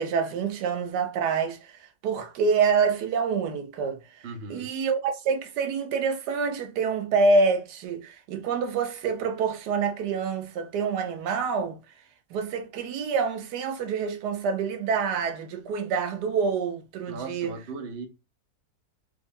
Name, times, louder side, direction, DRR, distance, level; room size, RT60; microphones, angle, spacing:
voice 1, 0.0-11.8 12.3-17.5, right 5 dB, 85° right, 1.3 m, -27 dB
voice 2, 4.2-4.7 17.1-18.1, right 4 dB, 50° right, 0.8 m, -37 dB
3.6 x 2.9 x 2.6 m
omnidirectional pair, 1.7 m